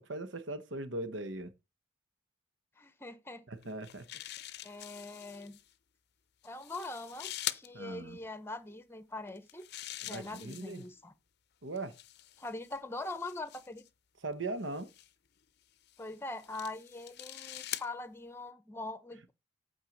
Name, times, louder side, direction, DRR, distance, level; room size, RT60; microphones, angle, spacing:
voice 1, 0.0-1.5 3.5-4.1 7.7-8.2 10.0-10.8 11.6-11.9 14.2-14.9, right 2 dB, 70° right, 1.1 m, -39 dB
voice 2, 2.8-3.4 4.6-5.6 6.4-9.7 10.0-11.1 12.4-13.8 16.0-19.3, left 2 dB, 10° left, 0.9 m, -42 dB
sound 1, 3.6-5.6 6.4-7.7 9.3-10.9 11.8-13.9 14.7-15.1 15.9-17.9, left 13 dB, 55° left, 0.6 m, -44 dB
8.9 x 4.5 x 6.5 m
head